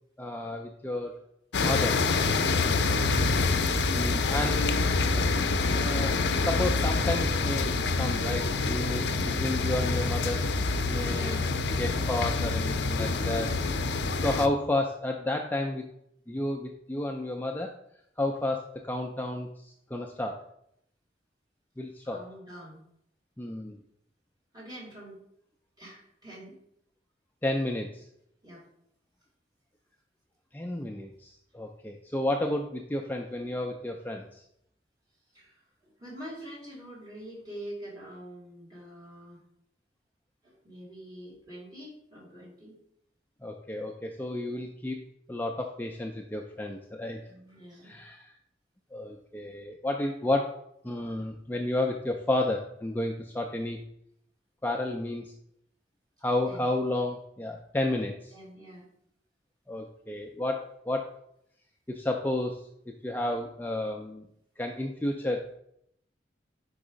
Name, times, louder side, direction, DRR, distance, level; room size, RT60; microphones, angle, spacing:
voice 1, 0.2-1.2 1.6-2.0 3.9-4.8 5.8-9.1 9.4-10.5 10.8-11.4 11.8-13.5 14.2-15.9 16.3-17.7 18.2-20.4 21.8-22.2 23.4-23.8 27.4-28.0 30.5-34.4 43.4-45.0 45.3-47.2 47.8-48.3 48.9-50.6 50.8-53.8 54.6-55.3 56.2-58.3 59.7-61.1 61.9-62.6 63.0-64.2 64.6-65.5, left 1 dB, 10° left, 2 dB, 0.4 m, -31 dB
sound 1, 1.5-14.5, left 3 dB, 75° left, 0.5 m, -26 dB
voice 2, 8.9-9.3 11.0-11.6 22.0-22.8 24.5-25.2 25.8-26.5 28.4-28.6 35.3-39.4 40.4-42.7 47.3-47.9 56.5-56.7 58.3-58.8, right 1 dB, 25° right, -5 dB, 2.5 m, -45 dB
5.2 x 4.7 x 5.0 m, 0.75 s
head